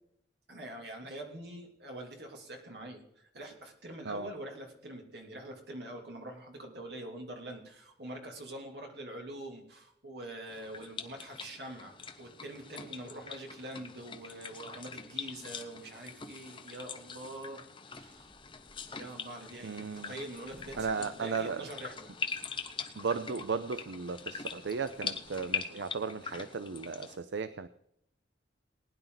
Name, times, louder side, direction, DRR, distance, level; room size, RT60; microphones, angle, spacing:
voice 1, 0.5-18.3 19.0-22.1, right 1 dB, 65° right, 1 dB, 2.9 m, -45 dB
sound 1, 10.5-27.2, left 5 dB, 25° left, 0.9 m, -43 dB
sound 2, 17.9-25.6, equal, 35° right, 3.9 m, -62 dB
voice 2, 19.6-20.1 20.8-21.7 23.0-27.7, right 5 dB, 80° right, 12 dB, 0.6 m, -35 dB
19.5 x 10.5 x 4.0 m, 0.76 s
head